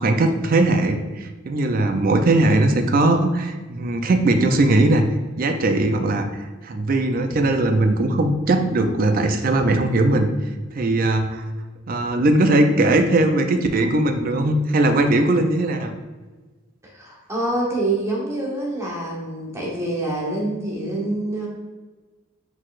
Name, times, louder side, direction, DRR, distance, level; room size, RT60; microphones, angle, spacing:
voice 1, 0.0-5.1 5.4-6.3 6.6-10.3 10.8-11.4 11.9-15.9, right 2 dB, 45° right, 6 dB, 0.4 m, -19 dB
voice 2, 16.9-21.5, right 2 dB, 15° right, -4 dB, 1.0 m, -26 dB
4.5 x 4.1 x 2.4 m, 1.3 s
head